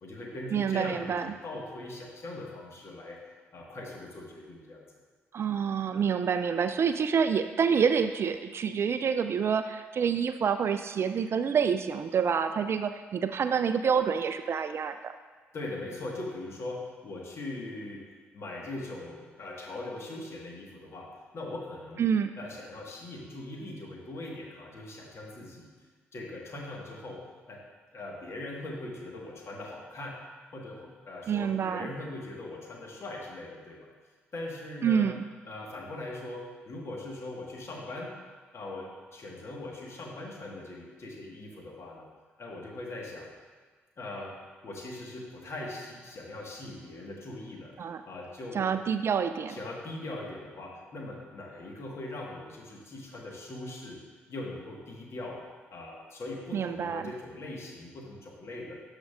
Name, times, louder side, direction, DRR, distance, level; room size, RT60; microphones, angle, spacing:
voice 1, 0.0-3.2 3.5-4.9 15.5-18.0 18.3-22.0 22.3-25.7 26.1-27.2 27.5-27.6 27.9-30.2 30.5-33.9 34.3-35.1 35.4-38.1 38.5-42.1 42.4-43.3 44.0-44.4 44.6-47.7 48.0-48.7 49.5-54.0 54.3-55.4 55.7-58.7, left 2 dB, 45° left, -1 dB, 1.6 m, -40 dB
voice 2, 0.5-1.3 5.3-15.1 22.0-22.3 31.3-31.9 34.8-35.2 47.8-48.0 48.5-49.6 56.5-57.0, right 7 dB, 40° right, 10 dB, 0.3 m, -27 dB
12.5 x 5.2 x 2.5 m, 1.4 s
figure-of-eight pair, 40°, 6 cm